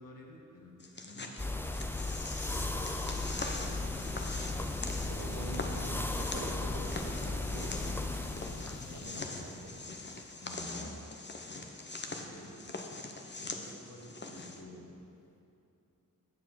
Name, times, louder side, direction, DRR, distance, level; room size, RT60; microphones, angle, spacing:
voice 1, 0.0-1.4 2.2-3.1 9.2-9.8 10.4-11.0 12.1-12.7 13.3-15.0, left 1 dB, 75° left, -2 dB, 1.8 m, -51 dB
sound 1, 0.8-14.6, left 3 dB, 35° left, 0.9 m, -43 dB
sound 2, 1.4-9.0, left 2 dB, 5° left, 0.5 m, -36 dB
sound 3, 2.7-10.7, left 5 dB, 55° left, 0.6 m, -49 dB
voice 2, 4.2-4.6 5.0-9.7 10.0-11.0, right 3 dB, 70° right, 1 dB, 1.3 m, -46 dB
8.5 x 7.0 x 6.0 m, 2.6 s
cardioid pair, 65°, 33 cm